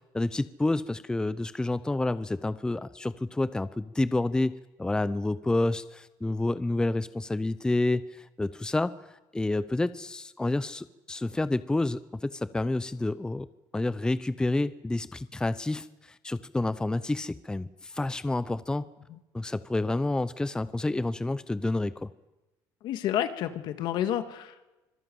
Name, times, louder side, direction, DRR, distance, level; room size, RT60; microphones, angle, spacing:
voice 1, 0.1-4.5 4.8-8.9 9.3-13.5 13.7-18.9 19.3-22.1, left 2 dB, 10° left, 15 dB, 0.6 m, -29 dB
voice 2, 22.8-24.6, left 11 dB, 70° left, 9 dB, 1.7 m, -30 dB
25.5 x 17.0 x 7.8 m, 1.1 s
cardioid pair, 110°, 8 cm